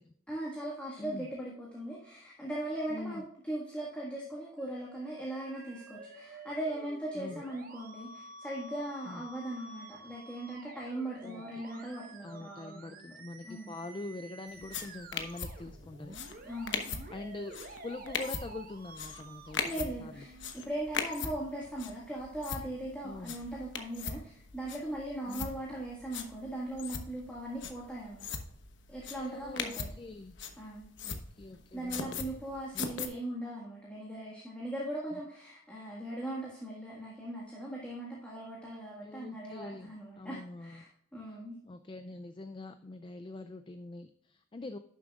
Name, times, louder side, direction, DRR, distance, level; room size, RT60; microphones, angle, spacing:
voice 1, 0.3-13.0 13.4-13.7 16.4-17.1 19.6-28.3 28.9-29.9 30.6-30.9 31.7-41.6, right 1 dB, 5° left, -5 dB, 1.7 m, -39 dB
voice 2, 2.9-3.2 7.1-7.4 9.1-9.2 11.2-11.6 12.2-16.2 17.1-20.2 23.0-23.4 25.3-25.6 29.2-30.4 31.0-32.3 32.7-32.9 35.1-35.2 39.0-40.8 41.3-41.4 41.6-44.8, left 2 dB, 25° left, 9 dB, 0.3 m, -44 dB
Musical instrument, 4.6-20.5, right 2 dB, 45° right, 1.1 m, -50 dB
sound 1, 14.5-33.1, left 6 dB, 60° left, 1.0 m, -41 dB
11.0 x 7.4 x 2.4 m, 0.71 s
head